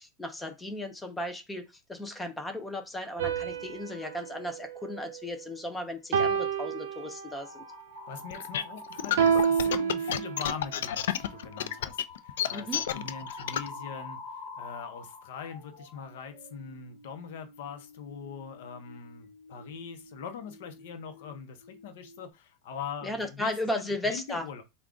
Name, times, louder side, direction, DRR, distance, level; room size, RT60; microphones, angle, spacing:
voice 1, 0.0-7.6 12.5-12.8 23.0-24.6, left 1 dB, 5° left, 0.5 m, -35 dB
sound 1, 3.2-5.6 6.1-7.6 9.2-10.7, right 7 dB, 75° right, 0.5 m, -29 dB
sound 2, 7.3-9.9 10.3-10.6 11.0-21.4 21.6-22.3, left 3 dB, 45° left, 1.2 m, -47 dB
voice 2, 8.1-24.6, left 6 dB, 60° left, 0.8 m, -42 dB
sound 3, 8.3-13.7, left 10 dB, 90° left, 0.3 m, -30 dB
3.6 x 2.3 x 3.7 m
supercardioid pair, 175°, 0 cm